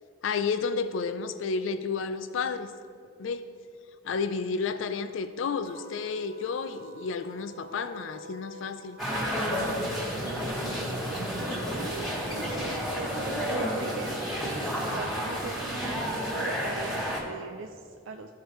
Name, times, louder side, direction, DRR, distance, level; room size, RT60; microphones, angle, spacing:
voice 1, 0.2-2.7 3.2-3.5 4.0-9.0, left 5 dB, 85° left, 11 dB, 0.4 m, -31 dB
sound 1, 5.6-12.8, left 2 dB, 50° left, 0.9 m, -47 dB
sound 2, 9.0-17.2, equal, ahead, 1.5 m, -31 dB
voice 2, 10.2-11.0 11.7-14.2 14.9-18.3, right 5 dB, 85° right, 5 dB, 0.4 m, -41 dB
13.5 x 4.7 x 3.1 m, 2.3 s
head